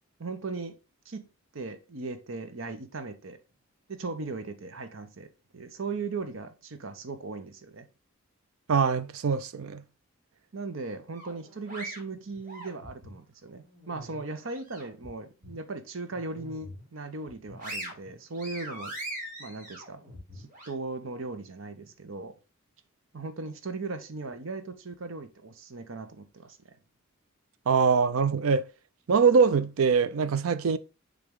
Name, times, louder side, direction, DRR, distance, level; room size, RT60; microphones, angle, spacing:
voice 1, 0.2-0.8 1.1-1.3 1.5-3.4 3.9-7.9 10.5-19.0 19.4-20.0 20.3-22.4 23.1-26.8, right 3 dB, 70° right, 0.9 m, -38 dB
voice 2, 8.7-9.8 27.7-28.7 29.1-30.8, right 5 dB, 90° right, 0.5 m, -23 dB
sound 1, 11.1-13.2 13.6-15.1 15.4-15.6 16.1-16.8 17.2-20.7, right 1 dB, 40° right, 2.7 m, -42 dB
6.8 x 3.8 x 3.6 m
head